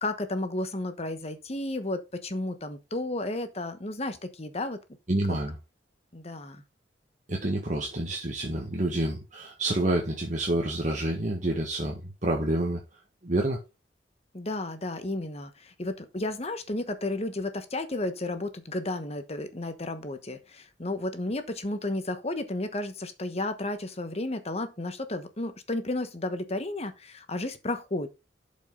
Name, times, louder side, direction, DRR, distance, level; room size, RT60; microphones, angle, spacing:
voice 1, 0.0-4.8 5.3-5.4 6.1-6.6 14.3-28.1, left 2 dB, 35° left, 1.2 m, -33 dB
voice 2, 5.1-5.6 7.3-12.8 13.2-13.6, right 1 dB, 40° right, 1.5 m, -28 dB
11.5 x 5.4 x 3.9 m
head